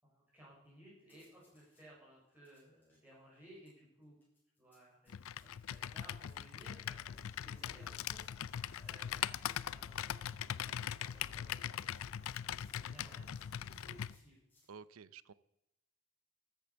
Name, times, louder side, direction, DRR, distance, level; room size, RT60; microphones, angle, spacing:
voice 1, 0.0-4.2 4.6-8.5 8.8-11.9 12.4-13.3 13.6-14.4, right 1 dB, 10° right, -7 dB, 6.1 m, -60 dB
sound 1, 1.1-1.9 2.3-10.2 10.7-14.7, left 2 dB, 10° left, 6.8 m, -73 dB
Computer keyboard, 5.1-14.2, left 10 dB, 75° left, 0.4 m, -41 dB
sound 2, 7.1-14.1, left 1 dB, 30° left, 2.6 m, -59 dB
voice 2, 14.7-15.3, right 6 dB, 80° right, 18 dB, 0.5 m, -52 dB
13.5 x 8.5 x 7.1 m, 0.90 s
head